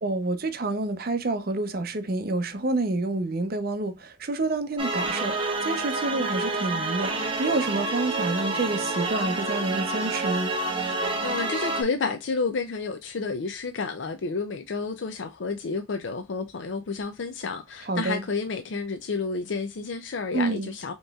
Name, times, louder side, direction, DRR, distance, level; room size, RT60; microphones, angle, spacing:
voice 1, 0.0-10.5 17.9-18.2 20.3-20.7, right 2 dB, 55° right, 0.7 m, -28 dB
sound 1, 4.8-11.8, right 3 dB, 30° right, 1.0 m, -28 dB
voice 2, 11.2-20.9, left 4 dB, 80° left, 0.5 m, -30 dB
5.3 x 3.0 x 2.3 m
head